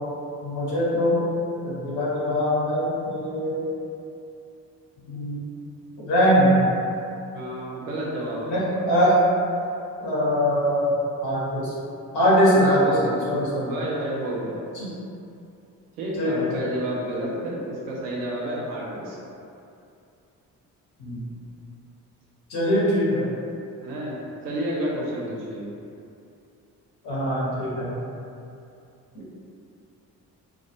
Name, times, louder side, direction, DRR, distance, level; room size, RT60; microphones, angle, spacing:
voice 1, 0.4-1.3 1.6-3.6 5.1-5.4 6.1-6.6 8.5-9.2 10.0-11.7 12.1-12.8 13.3-13.7 14.7-14.9 16.1-16.6 21.0-21.2 22.5-23.2 27.0-27.9 29.1-29.2, equal, 55° left, -8 dB, 0.9 m, -22 dB
voice 2, 7.3-8.8 12.5-13.3 13.7-14.7 16.0-19.2 23.8-24.2 24.4-25.7, right 1 dB, 80° right, -4 dB, 0.6 m, -30 dB
2.3 x 2.1 x 2.7 m, 2.6 s
figure-of-eight pair, 40°, 46 cm